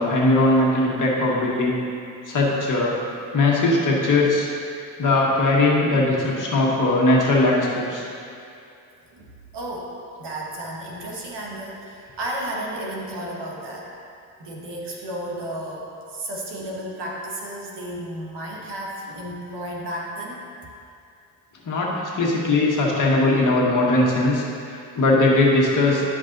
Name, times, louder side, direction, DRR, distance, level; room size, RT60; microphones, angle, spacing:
voice 1, 0.0-1.8 2.3-3.0 3.3-4.5 5.0-8.0 21.6-26.0, left 2 dB, 40° left, -4 dB, 1.6 m, -20 dB
voice 2, 9.5-9.9 10.2-13.9 14.4-20.4, right 1 dB, 55° right, -2 dB, 1.6 m, -33 dB
11.0 x 5.4 x 2.7 m, 2.5 s
supercardioid pair, 80°, 48 cm